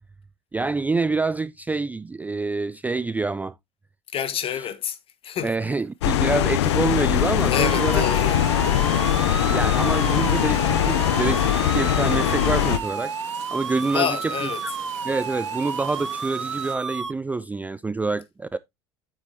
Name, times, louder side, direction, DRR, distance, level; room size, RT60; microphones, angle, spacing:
voice 1, 0.5-3.6 5.4-8.0 8.6-13.1 13.5-14.2 14.6-14.7 15.0-18.6, right 3 dB, 10° right, 0.4 m, -27 dB
voice 2, 4.1-5.0 5.2-5.7 7.5-8.4 13.8-14.6, left 9 dB, 40° left, 1.3 m, -27 dB
sound 1, 6.0-12.8, left 12 dB, 70° left, 0.6 m, -21 dB
sound 2, 6.6-16.8, right 11 dB, 55° right, 1.5 m, -43 dB
sound 3, 7.5-17.1, right 5 dB, 90° right, 0.6 m, -31 dB
9.1 x 7.3 x 2.7 m
figure-of-eight pair, 70°, 15 cm